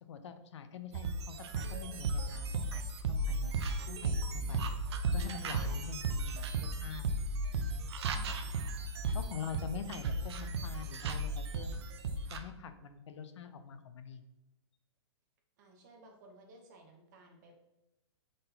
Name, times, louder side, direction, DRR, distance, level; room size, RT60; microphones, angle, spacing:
voice 1, 0.1-3.5 3.9-4.7 5.1-7.0 7.6-7.9 9.1-11.8 12.3-14.2, left 7 dB, 75° left, 10 dB, 0.5 m, -45 dB
sound 1, 0.9-12.4, right 2 dB, 65° right, 0.5 m, -35 dB
voice 2, 15.6-17.6, right 1 dB, 40° right, 2 dB, 0.8 m, -58 dB
3.8 x 3.7 x 2.8 m, 0.94 s
hypercardioid pair, 160°, 15 cm